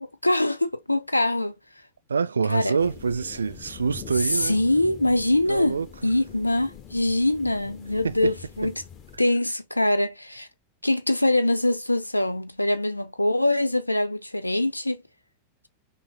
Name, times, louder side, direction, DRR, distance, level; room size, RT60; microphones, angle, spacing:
voice 1, 0.0-1.5 2.5-2.8 4.2-8.7 9.2-10.5 10.8-15.0, left 1 dB, 85° left, 0.6 m, -23 dB
voice 2, 2.1-4.6 5.5-5.9 8.0-8.1, right 5 dB, 75° right, 0.4 m, -26 dB
sound 1, 2.8-9.2, left 7 dB, 35° left, 1.3 m, -44 dB
5.6 x 2.1 x 3.7 m
figure-of-eight pair, 90°, 0 cm